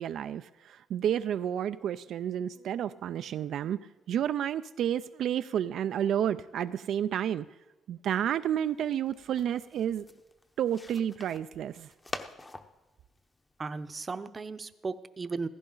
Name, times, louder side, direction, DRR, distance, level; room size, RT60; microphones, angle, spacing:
voice 1, 0.0-7.5 7.9-10.0 10.6-11.9, right 10 dB, 70° right, 11 dB, 0.3 m, -31 dB
sound 1, 8.5-14.0, left 2 dB, 20° left, 0.9 m, -46 dB
voice 2, 13.6-15.5, right 4 dB, 30° right, 12 dB, 0.7 m, -36 dB
15.5 x 15.5 x 3.9 m, 1.1 s
cardioid pair, 90°, 0 cm